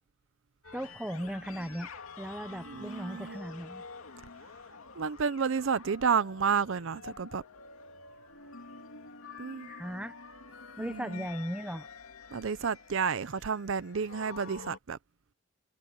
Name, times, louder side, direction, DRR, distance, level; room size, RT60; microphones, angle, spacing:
sound 1, 0.6-14.8, left 4 dB, 75° left, 2.4 m, -48 dB
voice 1, 0.7-1.9 2.2-3.8 9.7-10.1 10.8-11.9, equal, 5° right, 0.8 m, -37 dB
voice 2, 2.7-3.4 5.0-7.4 9.4-9.7 10.8-11.3 12.3-15.0, right 6 dB, 60° right, 0.5 m, -31 dB
head